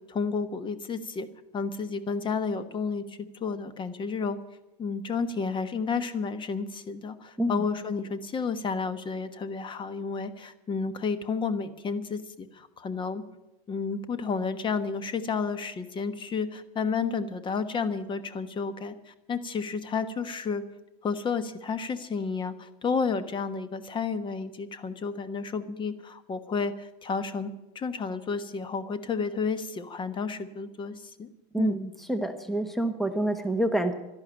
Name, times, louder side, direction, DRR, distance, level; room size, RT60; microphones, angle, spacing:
voice 1, 0.1-1.3 1.5-4.4 4.8-13.2 13.7-20.6 21.0-31.3 31.6-31.8, left 5 dB, 25° left, 12 dB, 1.2 m, -31 dB
voice 2, 31.5-33.9, right 1 dB, ahead, 8 dB, 1.1 m, -27 dB
12.5 x 11.5 x 8.8 m, 0.97 s
supercardioid pair, 140°, 20 cm